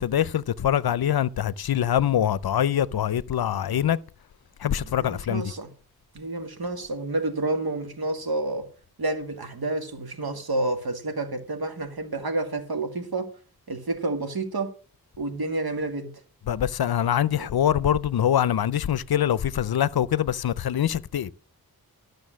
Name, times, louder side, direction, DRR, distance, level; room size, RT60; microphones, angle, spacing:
voice 1, 0.0-4.0 4.6-5.5 16.5-21.3, left 10 dB, 75° left, 0.6 m, -24 dB
voice 2, 4.8-5.7 6.1-8.7 9.0-13.3 13.7-14.7 15.2-16.1 17.4-17.5, right 2 dB, 75° right, 2.2 m, -29 dB
13.0 x 6.5 x 6.3 m
wide cardioid pair, 90°, 38 cm